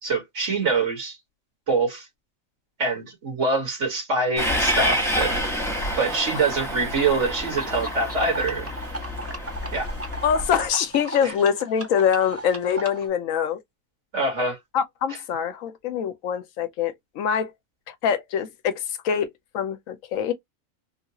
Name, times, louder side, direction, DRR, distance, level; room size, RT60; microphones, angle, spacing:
voice 1, 0.0-1.2 1.7-2.1 2.8-5.4 6.0-8.7 9.7-9.9 11.2-11.3 14.1-14.6, right 3 dB, 60° right, 1.9 m, -25 dB
Train, 4.4-10.7, equal, ahead, 0.9 m, -28 dB
sound 1, 7.2-13.1, right 1 dB, 20° right, 0.4 m, -37 dB
voice 2, 10.2-13.6 14.7-17.5 17.9-20.3, left 8 dB, 80° left, 1.0 m, -24 dB
3.6 x 2.3 x 2.8 m
omnidirectional pair, 1.4 m